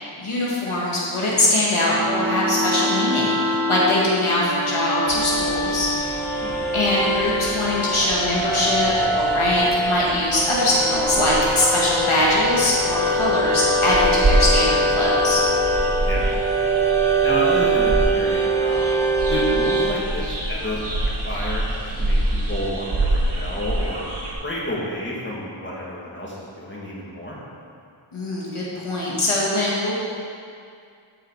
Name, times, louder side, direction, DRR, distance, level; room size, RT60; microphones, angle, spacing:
voice 1, 0.0-5.9 6.7-15.4 28.1-29.9, left 1 dB, 80° left, -6 dB, 2.1 m, -22 dB
sound 1, 1.9-20.0, right 1 dB, 5° left, 1.4 m, -23 dB
sound 2, 5.1-24.3, right 1 dB, 55° right, 1.8 m, -28 dB
voice 2, 6.4-6.8 16.0-16.3 17.2-18.8 19.3-24.0 24.4-27.4, left 1 dB, 25° left, -6 dB, 2.3 m, -30 dB
14.0 x 4.8 x 4.8 m, 2.3 s
wide cardioid pair, 60°, 49 cm